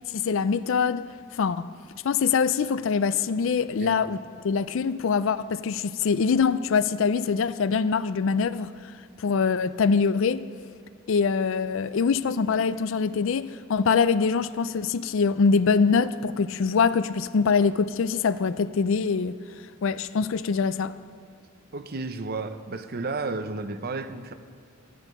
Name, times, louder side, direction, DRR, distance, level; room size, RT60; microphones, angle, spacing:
voice 1, 0.1-1.1 1.3-1.7 2.0-8.7 9.2-10.5 11.1-19.4 19.8-20.9, left 5 dB, 65° left, 0.4 m, -24 dB
voice 2, 21.7-24.3, right 3 dB, 45° right, 0.7 m, -32 dB
13.5 x 11.0 x 5.3 m
head